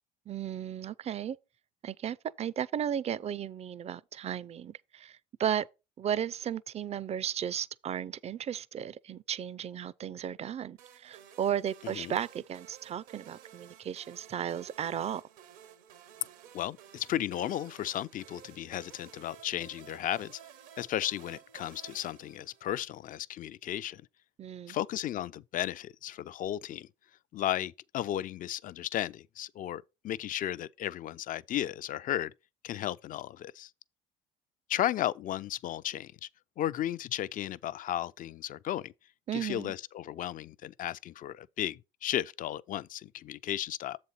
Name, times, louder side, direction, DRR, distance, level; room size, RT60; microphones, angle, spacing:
voice 1, 0.3-1.4 1.8-5.7 6.0-15.2 24.4-24.8 39.3-39.7, right 9 dB, 35° right, 0.4 m, -35 dB
sound 1, 10.8-23.0, right 9 dB, 80° right, 1.0 m, -54 dB
voice 2, 16.5-20.4 20.8-24.0 24.7-26.9 27.3-32.3 32.6-33.7 34.7-36.3 36.6-38.9 39.3-44.0, left 12 dB, 45° left, 0.4 m, -34 dB
7.4 x 4.2 x 5.6 m
hypercardioid pair, 70°, 19 cm